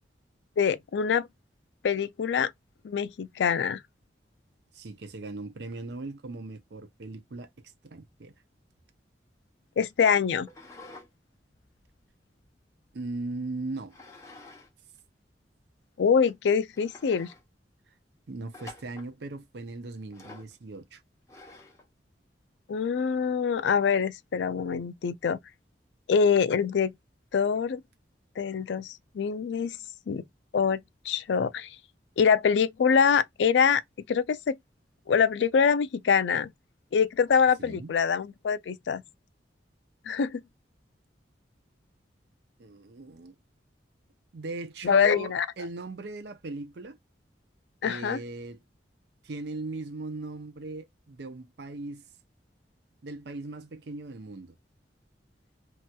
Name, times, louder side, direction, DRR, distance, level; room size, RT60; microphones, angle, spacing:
voice 1, 0.6-1.3 1.8-2.5 2.8-3.8 9.8-10.5 16.0-17.3 22.7-25.4 26.1-26.9 27.3-27.8 28.4-29.8 30.1-30.2 30.5-30.8 31.1-31.8 32.2-33.8 34.1-34.6 35.1-36.5 36.9-39.0 40.1-40.4 44.8-45.5 47.8-48.2, left 6 dB, 75° left, 0.4 m, -24 dB
voice 2, 4.7-7.5 7.8-8.3 12.9-14.0 18.3-21.0 37.6-37.9 42.6-43.4 44.3-47.0 47.8-48.6 49.2-52.0 53.0-54.6, right 3 dB, 65° right, 0.6 m, -38 dB
sound 1, 10.4-11.1 11.5-12.9 13.9-14.7 15.0-15.1 15.8-15.9 16.3-16.4 16.7-17.4 18.5-19.1 20.1-20.5 21.3-21.9, left 2 dB, 15° left, 0.8 m, -49 dB
3.0 x 2.9 x 2.2 m
head